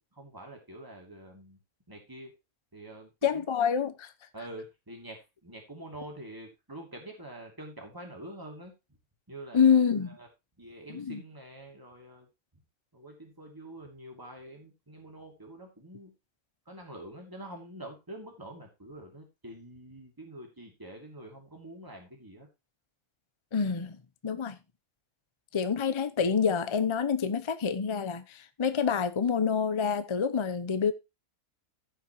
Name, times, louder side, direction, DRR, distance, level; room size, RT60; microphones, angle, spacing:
voice 1, 0.0-1.6 1.9-2.3 2.7-3.5 4.3-8.7 9.3-9.8 10.2-10.3 10.6-12.3 12.9-16.1 16.7-22.5, right 1 dB, 15° right, 2.6 m, -46 dB
voice 2, 3.2-4.1 9.5-10.2 10.9-11.2 23.5-24.6 25.5-30.9, left 6 dB, 30° left, 0.5 m, -27 dB
16.0 x 5.8 x 3.0 m
omnidirectional pair, 1.5 m